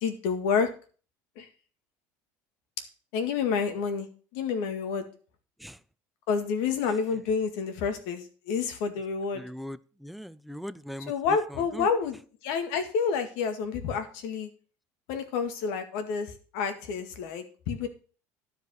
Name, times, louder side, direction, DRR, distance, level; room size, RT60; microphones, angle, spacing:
voice 1, 0.0-0.7 1.4-1.5 3.1-4.1 4.3-5.0 6.3-9.4 11.1-14.5 15.1-17.9, left 6 dB, 80° left, 7 dB, 2.0 m, -29 dB
voice 2, 9.3-11.9, equal, ahead, 14 dB, 0.4 m, -40 dB
11.5 x 5.2 x 6.5 m, 0.39 s
cardioid pair, 145°, 7 cm